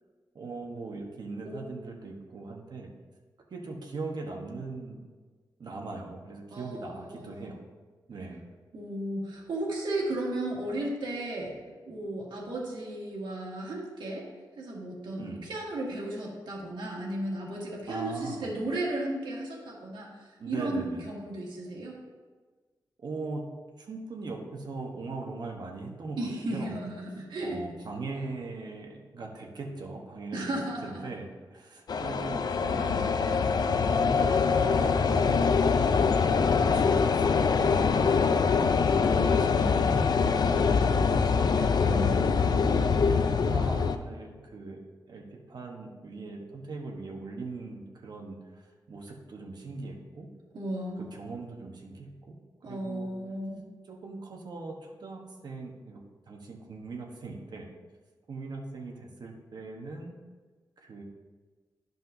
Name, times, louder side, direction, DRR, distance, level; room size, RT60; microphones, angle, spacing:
voice 1, 0.3-2.9 3.5-5.0 5.6-7.6 8.1-8.5 15.1-15.5 17.9-18.5 20.4-21.0 23.0-23.4 23.8-26.7 27.4-30.5 30.8-33.0 33.3-33.6 34.0-35.5 35.8-35.9 36.5-38.1 38.4-38.6 39.0-41.3 41.9-44.8 45.1-50.3 51.0-52.3 52.6-53.1 53.9-57.7 58.3-60.1 60.8-61.0, right 3 dB, 65° right, 1 dB, 1.1 m, -40 dB
voice 2, 6.5-7.4 8.7-11.6 11.9-14.3 14.6-20.1 20.5-22.0 26.2-27.6 30.3-31.0 41.6-42.4 50.5-51.0 52.6-53.6, right 1 dB, 85° right, -3 dB, 1.9 m, -34 dB
sound 1, 31.9-44.0, left 5 dB, 60° left, 0.4 m, -24 dB
12.0 x 5.3 x 2.7 m, 1.4 s
wide cardioid pair, 100°, 8 cm